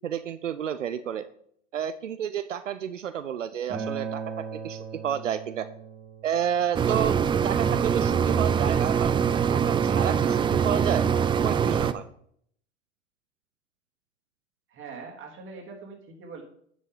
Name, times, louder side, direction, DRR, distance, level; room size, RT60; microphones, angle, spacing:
voice 1, 0.0-1.2 1.7-5.7 6.2-7.2 7.4-9.1 9.5-11.1 11.4-12.0, right 9 dB, 90° right, 12 dB, 0.6 m, -30 dB
Acoustic guitar, 3.7-8.9, right 5 dB, 55° right, 2.8 m, -40 dB
sound 1, 6.7-11.9, right 7 dB, 15° right, 0.4 m, -23 dB
voice 2, 14.7-16.4, right 4 dB, 35° right, 0 dB, 3.1 m, -42 dB
9.4 x 7.4 x 3.8 m, 0.65 s
hypercardioid pair, 90°, 36 cm